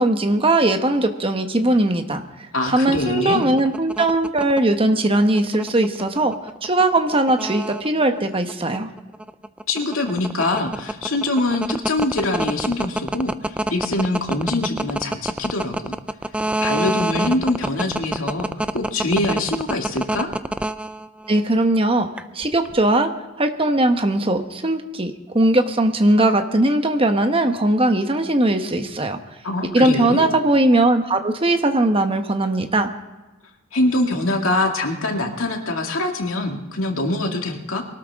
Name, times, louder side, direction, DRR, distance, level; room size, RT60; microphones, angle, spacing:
voice 1, 0.0-2.2 2.7-6.3 6.6-8.9 21.3-22.1 22.3-23.1 23.4-29.2 29.7-32.9, right 1 dB, 25° right, 6 dB, 1.1 m, -19 dB
voice 2, 2.5-3.5 9.7-15.9 16.6-20.3 29.4-30.3 33.7-37.8, left 2 dB, 75° left, 2 dB, 2.3 m, -24 dB
sound 1, 3.0-21.4 22.2-22.7, right 1 dB, 5° right, 0.3 m, -26 dB
23.0 x 13.0 x 3.6 m, 1.1 s
head